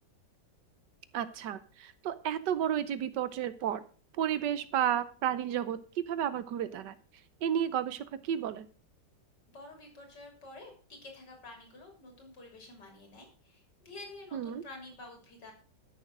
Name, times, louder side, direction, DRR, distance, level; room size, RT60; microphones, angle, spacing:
voice 1, 1.1-3.8 4.2-6.9 7.4-8.7 14.3-14.6, right 9 dB, 80° right, 14 dB, 1.5 m, -32 dB
voice 2, 9.5-15.5, left 2 dB, 75° left, 3 dB, 4.0 m, -49 dB
13.0 x 6.6 x 6.0 m, 0.39 s
omnidirectional pair, 1.9 m